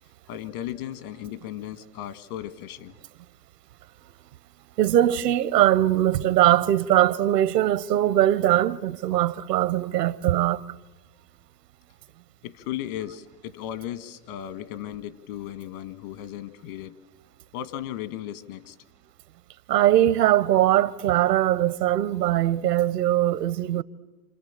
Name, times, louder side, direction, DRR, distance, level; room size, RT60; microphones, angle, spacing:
voice 1, 0.3-2.9 12.4-17.0 17.5-18.8, left 11 dB, 65° left, 1.8 m, -36 dB
voice 2, 4.8-10.6 19.7-23.8, right 13 dB, 80° right, 0.9 m, -21 dB
28.5 x 27.5 x 7.5 m
hypercardioid pair, 95°, 47 cm